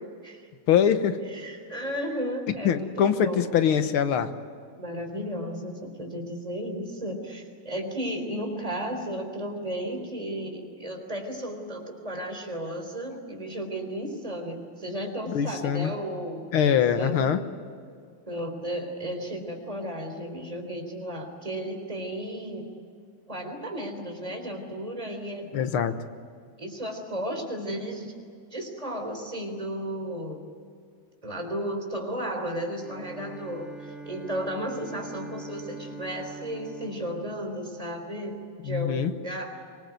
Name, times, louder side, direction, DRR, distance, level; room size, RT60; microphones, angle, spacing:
voice 1, 0.0-0.5 1.3-3.5 4.8-17.4 18.3-22.7 23.3-25.5 26.6-28.1 28.5-30.5 31.2-39.6, equal, 15° right, 3 dB, 3.8 m, -34 dB
voice 2, 0.7-1.2 2.6-4.3 15.3-15.9 16.5-17.4 25.5-25.9 38.6-39.1, left 8 dB, 80° left, 10 dB, 2.0 m, -23 dB
Bowed string instrument, 32.7-38.4, right 3 dB, ahead, 2.5 m, -43 dB
25.0 x 20.5 x 9.4 m, 2.2 s
omnidirectional pair, 2.3 m